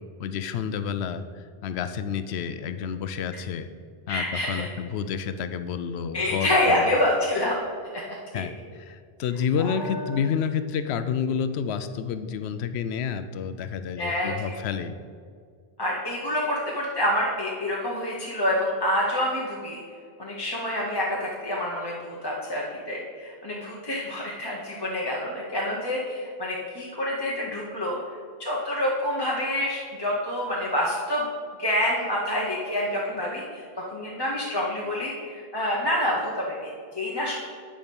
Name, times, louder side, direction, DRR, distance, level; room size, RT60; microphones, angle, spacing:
voice 1, 0.2-3.7 4.1-6.9 8.3-8.5 8.8-15.0, left 7 dB, 90° left, 11 dB, 0.8 m, -29 dB
voice 2, 4.1-4.7 6.1-7.6 7.9-8.0 8.3-8.4 9.6-10.2 14.0-14.3 15.8-19.8 20.2-28.0 28.4-31.3 31.6-37.4, left 1 dB, 25° left, -4 dB, 0.9 m, -27 dB
9.3 x 5.0 x 5.3 m, 2.1 s
omnidirectional pair, 1.1 m